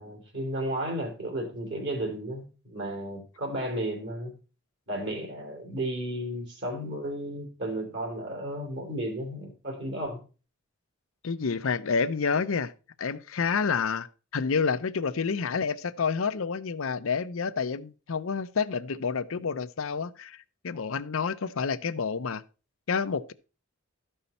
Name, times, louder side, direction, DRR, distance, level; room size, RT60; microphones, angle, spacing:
voice 1, 0.0-4.3 4.9-10.2, right 1 dB, 55° right, 3.1 m, -33 dB
voice 2, 11.2-12.7 13.0-22.4 22.9-23.3, left 5 dB, 70° left, 0.6 m, -29 dB
13.0 x 5.6 x 4.2 m
head